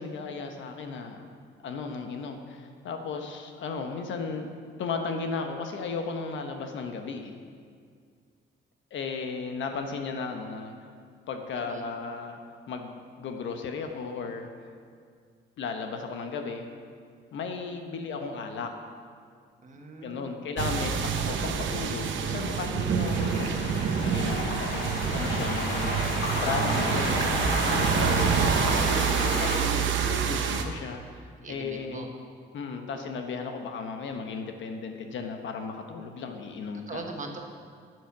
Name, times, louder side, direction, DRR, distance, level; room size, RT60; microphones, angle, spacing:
voice 1, 0.0-1.3 1.6-4.5 4.8-7.3 8.9-10.8 11.3-12.4 12.7-14.7 15.6-16.7 17.3-18.7 20.0-23.7 24.0-24.8 25.1-26.0 26.3-32.1 32.5-37.1, left 4 dB, 70° left, 5 dB, 1.1 m, -35 dB
voice 2, 19.6-20.3 31.4-32.1 36.9-37.4, right 3 dB, 40° right, 2 dB, 1.5 m, -40 dB
sound 1, 20.6-30.6, right 6 dB, 75° right, 0.9 m, -27 dB
sound 2, 23.0-29.6, left 2 dB, 90° left, 2.4 m, -32 dB
9.9 x 7.9 x 6.0 m, 2.1 s
cardioid pair, 90°, 20 cm